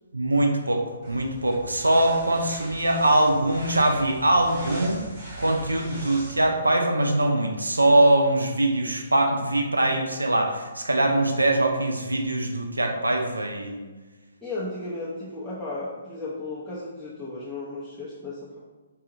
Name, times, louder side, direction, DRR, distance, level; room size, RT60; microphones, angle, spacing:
voice 1, 0.1-5.0 5.4-13.9, right 1 dB, 85° right, 2 dB, 0.5 m, -22 dB
sound 1, 1.0-6.6, right 1 dB, 35° right, 1.2 m, -40 dB
voice 2, 14.4-18.6, left 2 dB, 5° left, -11 dB, 0.6 m, -34 dB
4.0 x 2.7 x 2.6 m, 1.3 s
figure-of-eight pair, 130°, 0 cm